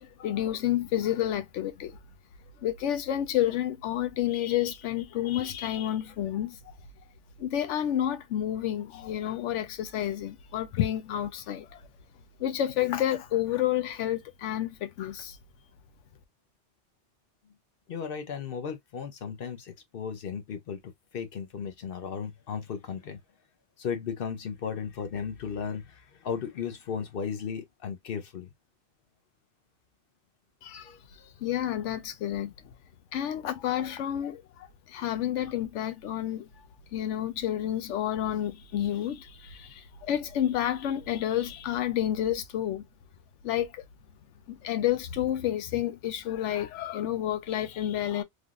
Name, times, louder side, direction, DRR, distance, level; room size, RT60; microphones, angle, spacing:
voice 1, 0.0-2.0 2.6-6.7 7.4-11.8 12.4-15.4 30.6-31.0 31.2-32.5 33.1-36.5 36.9-42.8 43.4-43.8 44.5-48.2, left 11 dB, 85° left, 0.9 m, -30 dB
voice 2, 17.9-23.2 23.8-28.5 30.8-31.0, left 6 dB, 55° left, 0.9 m, -35 dB
3.4 x 2.5 x 2.3 m
omnidirectional pair, 1.2 m